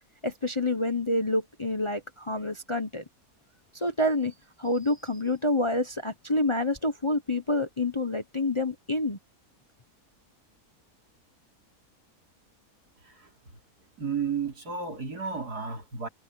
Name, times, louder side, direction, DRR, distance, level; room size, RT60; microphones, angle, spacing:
voice 1, 0.2-3.0 3.7-9.2, left 2 dB, 20° left, 1.1 m, -28 dB
voice 2, 14.0-16.1, right 6 dB, 85° right, 4.1 m, -32 dB
omnidirectional pair, 1.6 m